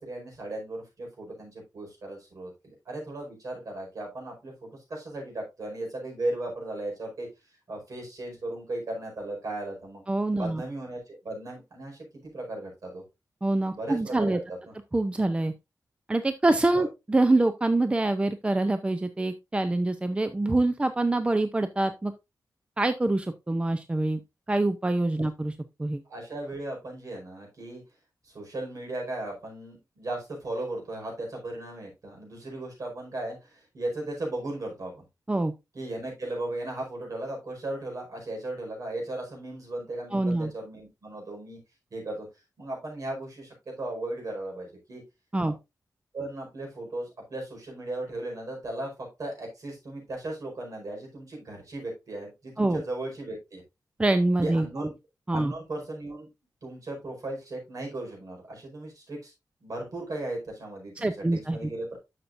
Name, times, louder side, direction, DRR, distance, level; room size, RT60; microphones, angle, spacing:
voice 1, 0.0-7.3 7.7-10.0 10.3-13.0 13.7-14.4 14.6-14.7 16.8-16.9 26.1-27.8 28.2-35.0 35.7-41.6 41.9-42.3 42.6-45.0 46.1-53.6 54.4-54.9 55.3-56.3 56.6-59.3 59.6-62.0, right 2 dB, 55° right, 0 dB, 4.9 m, -36 dB
voice 2, 10.1-10.6 13.4-14.4 14.9-15.5 16.1-22.1 22.8-24.2 24.5-25.5 25.8-26.0 35.3-35.5 40.1-40.5 45.3-45.5 52.6-52.8 54.0-54.7 55.3-55.5 61.0-61.6, right 2 dB, 15° right, 9 dB, 0.5 m, -25 dB
11.5 x 6.7 x 2.6 m, 0.23 s
wide cardioid pair, 155°, 7 cm